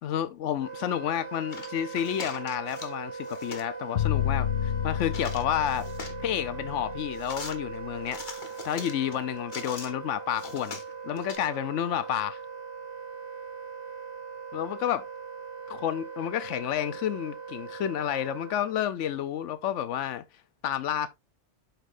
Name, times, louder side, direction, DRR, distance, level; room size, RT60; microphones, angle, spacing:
voice 1, 0.0-5.9 6.2-8.2 8.7-10.8 11.0-12.4 14.5-15.0 15.7-20.2 20.6-21.1, left 10 dB, 90° left, 1.0 m, -30 dB
Wind instrument woodwind instrument, 0.6-18.8, right 5 dB, 65° right, 2.2 m, -40 dB
sound 1, 1.5-3.0 3.2-3.7 5.0-6.3 7.1-7.6 8.1-9.9 10.3-11.4, left 4 dB, 45° left, 1.3 m, -41 dB
sound 2, 4.0-8.1, left 10 dB, 65° left, 0.7 m, -31 dB
8.0 x 6.0 x 2.5 m
omnidirectional pair, 1.2 m